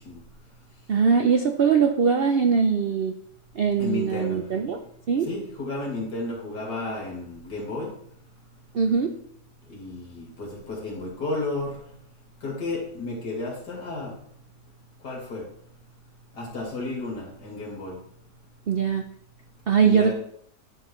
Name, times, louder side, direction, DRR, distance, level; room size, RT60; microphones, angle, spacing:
voice 1, 0.9-3.1 3.6-4.8 5.1-5.3 8.7-9.1 18.7-19.0 19.7-20.1, right 6 dB, 70° right, 5 dB, 0.5 m, -21 dB
voice 2, 3.8-4.4 5.3-7.9 9.7-11.8 12.4-14.2 15.0-15.4 16.4-18.0 19.8-20.1, left 2 dB, 90° left, -2 dB, 2.9 m, -32 dB
10.5 x 7.7 x 3.2 m, 0.67 s
omnidirectional pair, 1.8 m